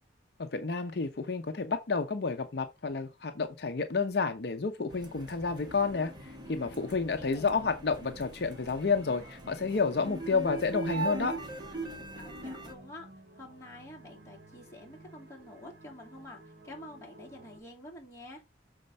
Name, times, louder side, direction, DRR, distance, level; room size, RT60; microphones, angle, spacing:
voice 1, 0.4-11.3, left 4 dB, 60° left, 0.6 m, -30 dB
sound 1, 4.9-12.7, right 2 dB, 25° right, 1.5 m, -40 dB
voice 2, 7.2-7.5 12.2-13.1 13.3-18.4, left 1 dB, 15° left, 2.8 m, -48 dB
sound 2, 11.2-17.6, right 1 dB, 60° right, 1.4 m, -54 dB
6.5 x 4.3 x 5.4 m
head